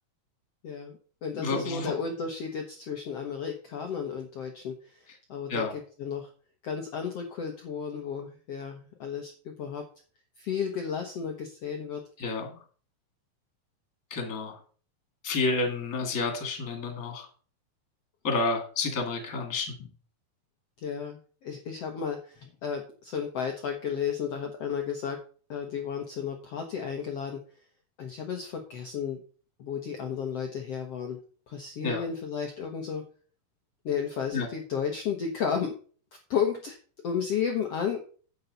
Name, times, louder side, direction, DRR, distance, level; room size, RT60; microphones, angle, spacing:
voice 1, 0.6-6.3 6.6-9.9 10.4-12.0 20.8-25.2 25.5-27.4 28.0-29.2 29.6-31.2 31.5-33.0 33.8-35.7 36.3-36.8 37.0-38.0, left 7 dB, 75° left, 3 dB, 1.4 m, -33 dB
voice 2, 1.3-1.9 5.5-5.7 12.2-12.5 14.1-14.6 15.2-17.3 18.2-19.7 31.8-32.0 34.3-34.5, left 3 dB, 30° left, 4 dB, 2.1 m, -30 dB
10.0 x 8.0 x 4.1 m, 0.41 s
omnidirectional pair, 4.4 m